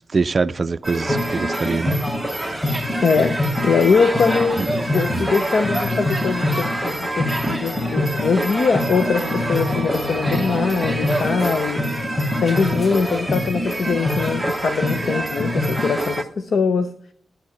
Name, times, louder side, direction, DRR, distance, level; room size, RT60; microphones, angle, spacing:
voice 1, 0.1-2.0 4.6-4.7 5.1-5.3 7.4-7.6, right 4 dB, 35° right, 0.4 m, -23 dB
sound 1, 0.8-16.2, equal, ahead, 1.1 m, -24 dB
voice 2, 3.0-16.9, left 5 dB, 65° left, 0.8 m, -22 dB
Bell, 9.1-13.7, left 1 dB, 85° left, 7.2 m, -34 dB
14.5 x 10.5 x 6.0 m
wide cardioid pair, 120°, 0 cm